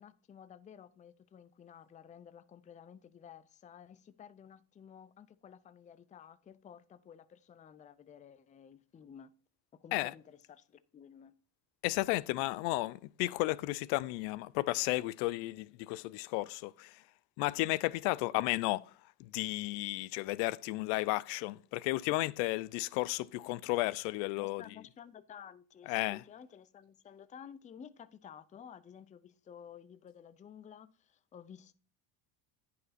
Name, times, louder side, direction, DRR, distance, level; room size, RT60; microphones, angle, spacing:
voice 1, 0.0-9.3 9.7-11.3 24.4-31.7, left 8 dB, 15° left, 0.4 m, -53 dB
voice 2, 11.8-17.0 17.4-18.9 19.2-24.6 25.9-26.2, left 20 dB, 80° left, 0.6 m, -33 dB
10.5 x 5.7 x 4.1 m
supercardioid pair, 110°, 48 cm